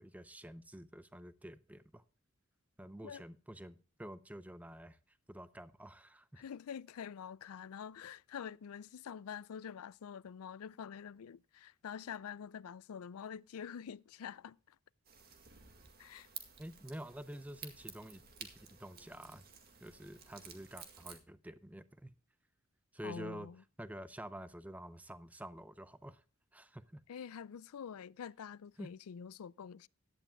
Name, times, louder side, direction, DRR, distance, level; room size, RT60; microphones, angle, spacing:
voice 1, 0.0-2.0 2.8-6.4 16.6-19.5 19.8-22.1 22.9-23.5 23.8-26.2 26.5-27.0 28.8-28.9, right 1 dB, 5° right, 0.5 m, -49 dB
voice 2, 6.4-14.8 16.0-16.3 23.0-23.6 27.1-29.9, left 7 dB, 80° left, 0.4 m, -46 dB
sound 1, 15.1-21.2, right 7 dB, 45° right, 1.9 m, -53 dB
16.0 x 11.5 x 2.3 m
head